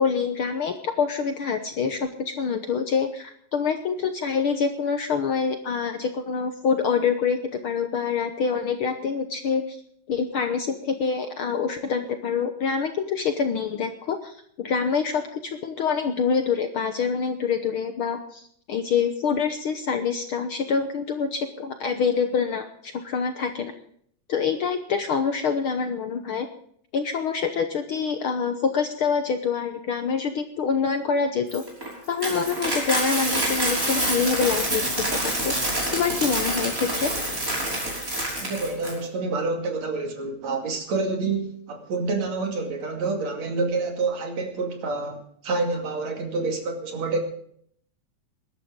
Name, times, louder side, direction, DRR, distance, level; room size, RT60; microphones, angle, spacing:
voice 1, 0.0-7.4 7.6-9.8 10.1-23.7 24.3-26.5 26.9-31.6 32.1-35.5 35.9-37.1, left 6 dB, 65° left, 7 dB, 1.4 m, -26 dB
Coin (dropping), 31.5-38.9, right 1 dB, 25° right, 6.0 m, -27 dB
voice 2, 38.4-47.2, right 3 dB, 65° right, 3 dB, 3.6 m, -28 dB
22.0 x 12.0 x 3.8 m, 0.64 s
omnidirectional pair, 3.3 m